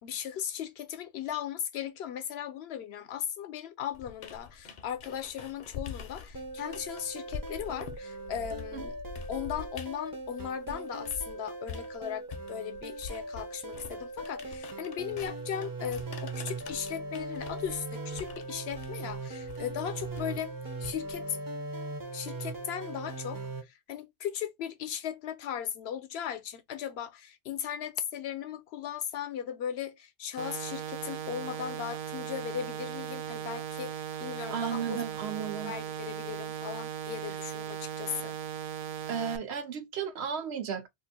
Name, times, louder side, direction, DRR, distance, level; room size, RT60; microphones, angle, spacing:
voice 1, 0.0-9.0 9.3-20.5 20.8-21.4 22.1-35.0 35.6-38.4, left 9 dB, 80° left, 0.8 m, -37 dB
sound 1, 3.9-11.3 11.7-21.3, left 6 dB, 50° left, 0.6 m, -45 dB
sound 2, 6.3-23.6, right 2 dB, 25° right, 0.5 m, -40 dB
sound 3, 30.4-39.4, right 9 dB, 60° right, 0.7 m, -38 dB
voice 2, 34.5-35.8 39.1-40.9, right 7 dB, 80° right, 1.0 m, -34 dB
2.6 x 2.5 x 4.0 m
omnidirectional pair, 1.1 m